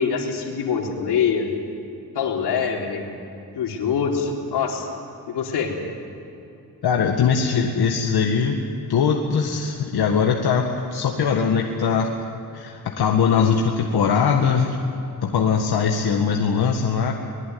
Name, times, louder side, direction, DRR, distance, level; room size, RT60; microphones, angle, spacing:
voice 1, 0.0-1.5 2.1-3.1 3.5-4.9 5.3-5.7, left 6 dB, 90° left, 0 dB, 3.9 m, -24 dB
voice 2, 6.8-8.6 8.9-10.7 10.9-12.1 12.5-14.8 15.2-17.1, left 6 dB, 70° left, 2 dB, 1.9 m, -21 dB
24.0 x 21.5 x 9.5 m, 2.8 s
cardioid pair, 110°, 39 cm